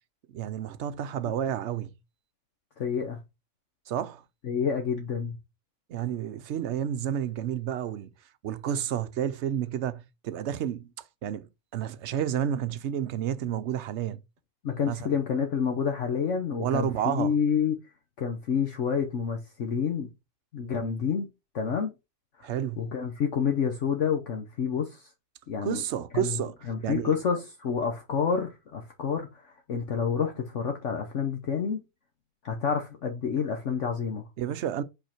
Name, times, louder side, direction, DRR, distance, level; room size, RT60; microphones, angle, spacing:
voice 1, 0.3-1.9 3.9-4.2 5.9-8.1 8.4-10.9 11.2-14.2 14.9-15.1 16.6-17.3 22.4-22.8 25.6-26.6 26.8-27.2 34.4-34.8, right 10 dB, 60° right, 0.8 m, -30 dB
voice 2, 2.8-3.2 4.4-5.4 14.6-17.8 18.2-20.1 20.5-21.3 21.5-21.9 22.4-22.5 22.8-25.1 25.5-25.8 26.1-26.4 26.7-31.8 32.4-34.2, left 6 dB, 60° left, 1.3 m, -28 dB
5.5 x 4.9 x 4.4 m
omnidirectional pair, 1.5 m